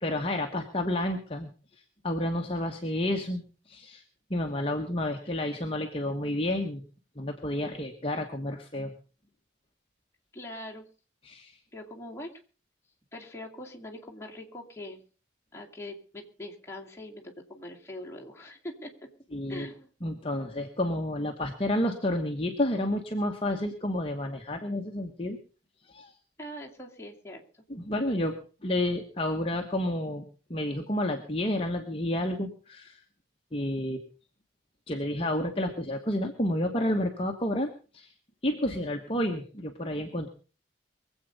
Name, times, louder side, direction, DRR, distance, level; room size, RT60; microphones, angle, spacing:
voice 1, 0.0-4.0 4.3-6.8 7.2-8.9 11.2-11.6 19.3-19.7 20.0-25.4 25.8-26.2 27.7-33.0 33.5-34.0 34.9-38.1 38.4-40.3, left 1 dB, 30° left, 3 dB, 1.2 m, -30 dB
voice 2, 5.2-5.6 10.3-10.9 11.7-12.4 13.1-15.0 15.5-18.9 19.5-19.9 26.4-27.4, left 1 dB, 15° left, -2 dB, 2.4 m, -42 dB
23.0 x 8.2 x 5.3 m, 0.38 s
head